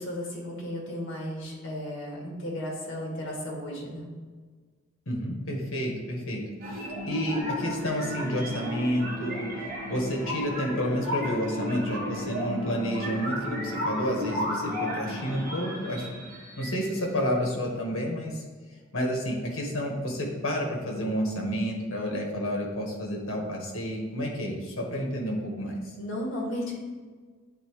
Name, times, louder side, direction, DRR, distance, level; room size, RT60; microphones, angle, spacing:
voice 1, 0.0-4.1 26.0-26.7, left 1 dB, 65° left, -2 dB, 1.9 m, -34 dB
voice 2, 5.1-9.5 9.9-16.3 16.6-18.4 18.9-25.8, equal, 85° left, 0 dB, 1.5 m, -30 dB
sound 1, 6.6-17.2, left 1 dB, 45° right, 1.4 m, -33 dB
9.3 x 4.0 x 3.1 m, 1.5 s
head